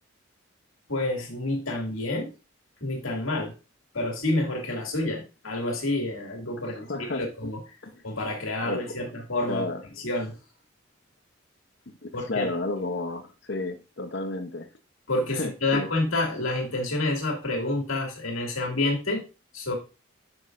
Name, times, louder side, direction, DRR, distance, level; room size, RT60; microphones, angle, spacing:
voice 1, 0.9-2.3 2.8-3.5 3.9-7.6 8.0-9.6 10.0-10.4 12.1-12.5 15.1-19.2 19.5-19.7, left 2 dB, 85° left, 2 dB, 2.3 m, -28 dB
voice 2, 6.9-7.2 7.8-8.0 8.6-9.1 9.5-9.8 12.0-14.7 15.3-15.9, left 2 dB, 55° left, 7 dB, 0.8 m, -32 dB
9.7 x 6.2 x 2.5 m, 0.30 s
head